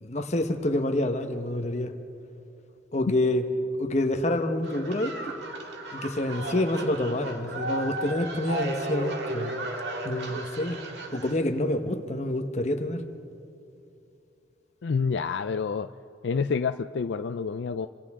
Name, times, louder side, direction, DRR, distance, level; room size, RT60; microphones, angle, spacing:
voice 1, 0.0-1.9 2.9-3.4 3.8-5.4 5.9-9.6 10.0-10.8 11.1-13.0, left 1 dB, 40° left, 6 dB, 1.2 m, -27 dB
sound 1, 4.6-11.4, right 2 dB, 65° right, 2.2 m, -35 dB
voice 2, 14.8-15.9 16.2-17.9, left 5 dB, 70° left, 9 dB, 0.4 m, -28 dB
28.5 x 26.0 x 3.7 m, 2.8 s
head